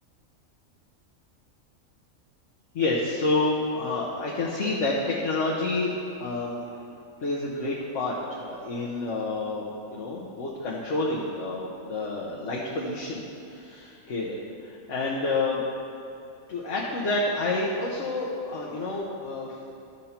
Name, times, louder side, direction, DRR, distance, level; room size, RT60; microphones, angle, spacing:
voice 1, 2.7-6.8 7.2-15.6 16.5-19.6, left 2 dB, 65° left, -4 dB, 1.3 m, -29 dB
13.0 x 5.3 x 4.4 m, 2.7 s
omnidirectional pair, 1.4 m